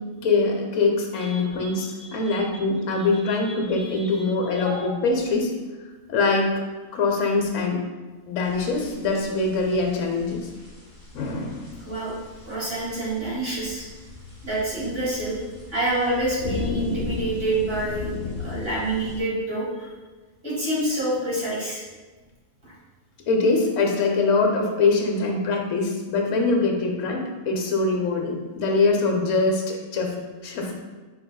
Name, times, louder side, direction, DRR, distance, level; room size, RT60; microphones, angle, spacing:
voice 1, 0.2-5.5 6.1-6.5 6.9-7.8 8.3-10.5 11.1-11.7 23.3-30.1 30.4-30.8, left 3 dB, 75° left, 2 dB, 1.0 m, -23 dB
voice 2, 1.2-2.4 2.9-4.8 11.8-12.1 12.4-13.9 14.4-15.4 15.7-19.9 20.4-21.8 22.6-22.7, right 1 dB, 45° right, -8 dB, 1.9 m, -28 dB
sound 1, 8.4-19.2, left 3 dB, 50° left, 1.9 m, -37 dB
4.5 x 4.2 x 2.2 m, 1.3 s
omnidirectional pair, 1.3 m